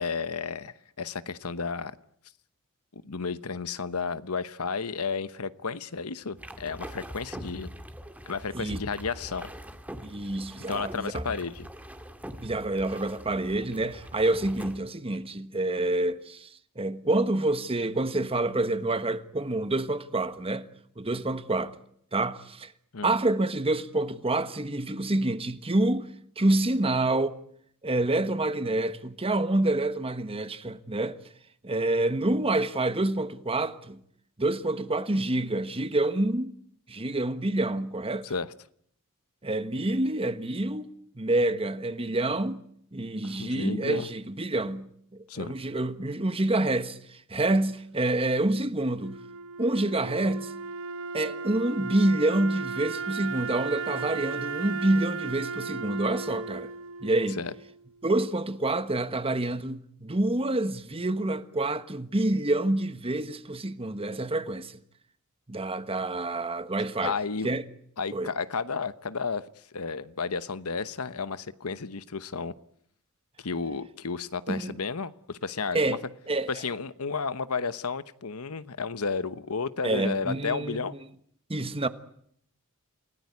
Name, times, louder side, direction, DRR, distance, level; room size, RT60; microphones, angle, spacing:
voice 1, 0.0-1.9 2.9-7.7 8.3-9.5 10.7-11.7 22.9-23.2 38.2-38.5 43.2-44.1 45.3-45.5 57.4-57.5 67.0-67.5 68.0-72.5 73.4-76.0 76.5-80.9, left 5 dB, 70° left, 1.0 m, -32 dB
sound 1, 6.4-14.8, equal, 5° right, 2.0 m, -42 dB
voice 2, 10.0-11.2 12.4-16.5 16.7-20.7 21.0-21.8 22.1-22.7 23.0-26.1 26.4-27.4 27.8-31.2 31.6-34.0 34.4-36.5 36.9-38.3 39.4-40.9 41.2-42.6 42.9-49.2 49.6-50.5 51.1-56.7 57.0-57.4 58.0-64.8 65.5-67.1 67.4-67.6 68.1-68.3 74.5-74.7 75.7-76.0 76.3-76.5 79.8-80.8 81.5-81.9, right 2 dB, 25° right, 1.3 m, -27 dB
Wind instrument woodwind instrument, 49.0-58.0, right 5 dB, 65° right, 1.0 m, -36 dB
28.5 x 18.0 x 9.5 m
head